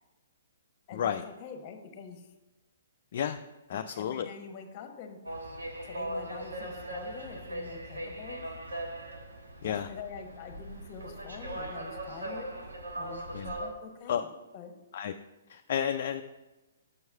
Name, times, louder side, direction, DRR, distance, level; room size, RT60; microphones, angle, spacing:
voice 1, 0.9-2.3 3.7-5.2 5.8-8.6 9.3-9.4 9.6-12.7 13.0-14.8, left 6 dB, 35° left, 5 dB, 1.1 m, -45 dB
voice 2, 3.7-4.3 9.6-9.9 13.3-13.6 14.1-14.2 14.9-15.1 15.5-16.2, left 9 dB, 55° left, 6 dB, 0.4 m, -31 dB
sound 1, 5.3-13.7, right 1 dB, 90° right, 1.2 m, -39 dB
6.5 x 4.7 x 5.5 m, 1.0 s
hypercardioid pair, 130°, 0 cm